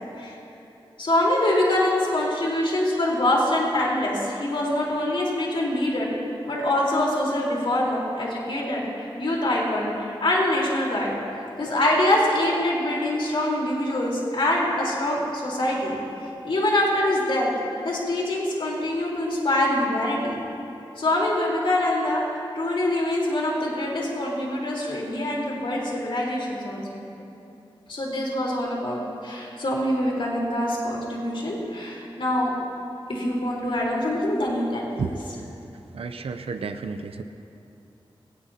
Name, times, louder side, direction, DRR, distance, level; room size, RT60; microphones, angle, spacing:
voice 1, 1.0-6.2 6.5-11.2 11.6-16.0 16.4-17.5 17.8-20.4 21.0-27.0 27.9-32.5 33.1-35.1, left 1 dB, 60° left, -3 dB, 4.1 m, -24 dB
voice 2, 35.9-37.2, right 5 dB, 80° right, 8 dB, 0.6 m, -32 dB
20.0 x 18.0 x 2.9 m, 2.8 s
wide cardioid pair, 80°, 10 cm